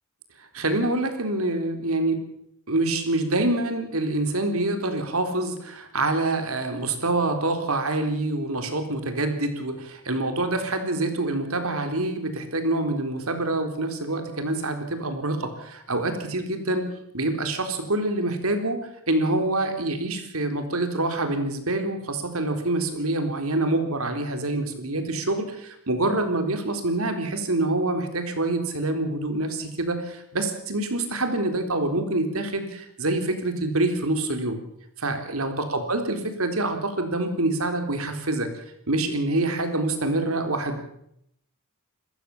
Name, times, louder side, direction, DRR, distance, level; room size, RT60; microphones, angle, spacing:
voice 1, 0.4-2.2 2.7-16.8 17.1-34.6 35.0-38.5 38.9-40.8, right 2 dB, 75° right, 7 dB, 3.9 m, -26 dB
27.0 x 15.0 x 7.2 m, 0.75 s
head